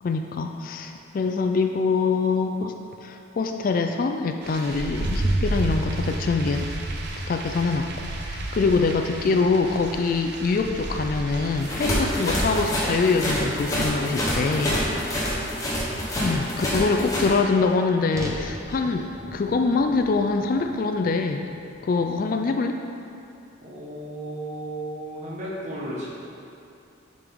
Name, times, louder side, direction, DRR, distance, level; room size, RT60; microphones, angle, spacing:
voice 1, 0.0-2.7 3.0-6.7 7.2-14.8 16.2-21.5 21.8-22.8, left 4 dB, 45° left, 5 dB, 0.3 m, -24 dB
sound 1, 4.4-13.2, right 1 dB, 55° right, 0.6 m, -31 dB
sound 2, 11.6-17.3, equal, 15° left, 1.0 m, -26 dB
voice 2, 14.8-15.7 23.6-26.1, right 1 dB, 35° right, -6 dB, 1.3 m, -35 dB
sound 3, 18.1-22.4, equal, 15° right, 0.5 m, -39 dB
7.5 x 5.3 x 3.5 m, 2.6 s
head